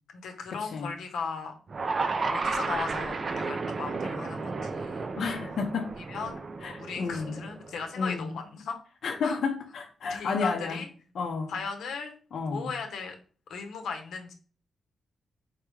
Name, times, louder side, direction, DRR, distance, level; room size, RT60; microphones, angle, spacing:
voice 1, 0.1-1.5 2.3-5.1 6.1-6.4 6.8-8.8 9.2-9.4 10.0-10.9 11.5-12.2 12.5-13.2 13.5-14.3, left 5 dB, 90° left, 0.9 m, -37 dB
sound 1, 1.7-7.9, right 4 dB, 30° right, 0.4 m, -33 dB
voice 2, 5.2-6.0 6.6-7.4 8.0-8.3 9.0-10.8 11.2-11.5 12.3-12.7, left 5 dB, 55° left, 0.7 m, -31 dB
4.7 x 3.5 x 3.1 m
wide cardioid pair, 175°, 0 cm